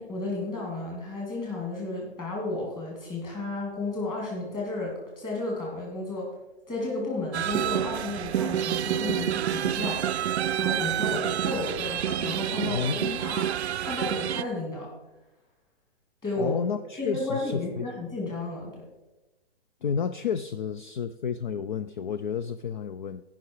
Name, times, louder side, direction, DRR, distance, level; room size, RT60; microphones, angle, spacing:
voice 1, 0.0-6.3 6.7-13.5 13.7-14.9 16.2-16.5 17.0-18.9, left 2 dB, 15° left, -3 dB, 2.8 m, -33 dB
sound 1, 7.3-14.4, right 10 dB, 85° right, 0.5 m, -28 dB
voice 2, 12.6-13.3 16.4-17.9 19.8-23.2, left 7 dB, 50° left, 12 dB, 0.4 m, -31 dB
15.5 x 5.8 x 4.8 m, 1.1 s
hypercardioid pair, 170°, 32 cm